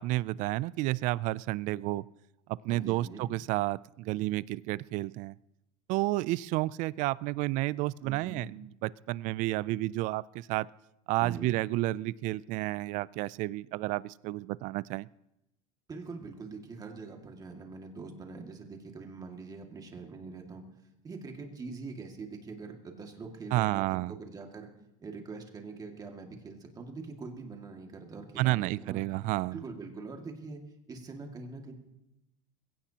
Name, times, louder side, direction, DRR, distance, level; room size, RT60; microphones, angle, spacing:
voice 1, 0.0-2.0 2.5-5.3 5.9-10.7 11.1-15.1 23.5-24.1 28.4-29.6, right 18 dB, 50° right, 21 dB, 0.4 m, -31 dB
voice 2, 2.7-3.3 8.0-8.5 11.2-11.6 15.9-20.7 21.0-24.7 25.0-29.0 29.5-30.6 30.9-31.7, right 4 dB, 25° right, 3 dB, 2.2 m, -43 dB
21.0 x 16.5 x 2.9 m, 0.90 s
supercardioid pair, 135°, 16 cm